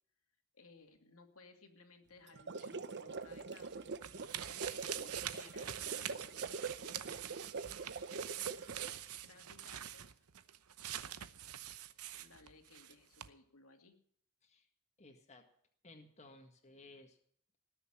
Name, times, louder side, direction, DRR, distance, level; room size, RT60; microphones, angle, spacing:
voice 1, 0.5-3.8 4.4-7.0 9.2-10.3 12.1-14.0, left 3 dB, 75° left, 4 dB, 2.4 m, -61 dB
sound 1, 2.3-9.1, right 4 dB, 50° right, 0.8 m, -44 dB
sound 2, 3.3-12.9 13.2-13.3, right 11 dB, 85° right, 0.8 m, -45 dB
voice 2, 15.0-15.5 15.8-17.2, left 2 dB, 30° left, 3 dB, 1.8 m, -58 dB
19.0 x 7.0 x 10.0 m, 0.64 s
head